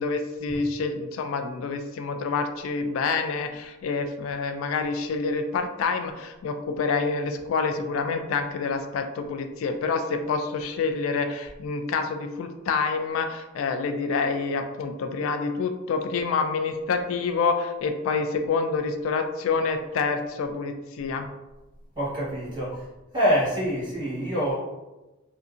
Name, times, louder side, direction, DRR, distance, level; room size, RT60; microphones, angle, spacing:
voice 1, 0.0-21.3, left 4 dB, 85° left, 6 dB, 0.3 m, -27 dB
voice 2, 21.9-22.8 23.1-24.5, equal, 25° right, -9 dB, 1.3 m, -25 dB
2.6 x 2.6 x 2.4 m, 1.1 s
head